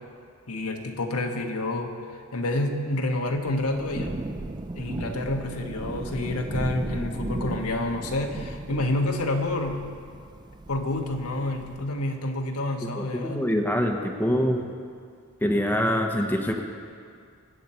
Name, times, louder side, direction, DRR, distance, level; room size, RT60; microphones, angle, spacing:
voice 1, 0.5-4.2 4.7-9.9 10.7-13.5, left 2 dB, 85° left, 2 dB, 1.4 m, -28 dB
Thunder / Rain, 3.4-12.0, right 2 dB, 20° right, 0.3 m, -36 dB
voice 2, 13.0-14.6 15.4-16.6, equal, 10° left, 2 dB, 0.9 m, -25 dB
23.5 x 8.3 x 4.4 m, 2.2 s
head